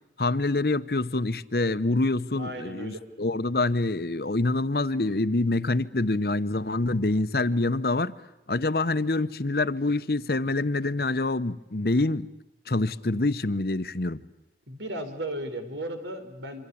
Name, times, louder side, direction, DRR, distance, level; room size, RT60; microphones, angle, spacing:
voice 1, 0.2-8.2 8.5-12.3 12.7-14.2, left 2 dB, 55° left, 0.9 m, -26 dB
voice 2, 2.3-3.0 14.7-16.7, right 1 dB, 90° right, 4.7 m, -35 dB
27.0 x 25.5 x 8.6 m
head